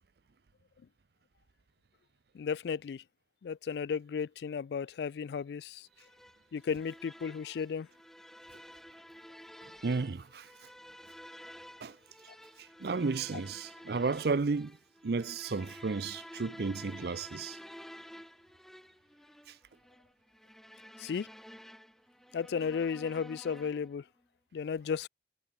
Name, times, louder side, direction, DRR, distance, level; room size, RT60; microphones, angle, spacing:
voice 1, 2.3-3.0 3.4-5.9 6.5-7.9 21.0-21.3 22.3-24.0 24.5-25.1, left 6 dB, 70° left, 0.3 m, -34 dB
sound 1, 6.0-24.0, equal, ahead, 1.2 m, -51 dB
voice 2, 9.8-10.5 11.8-12.0 12.6-14.8 15.0-17.6, right 4 dB, 60° right, 0.5 m, -33 dB
head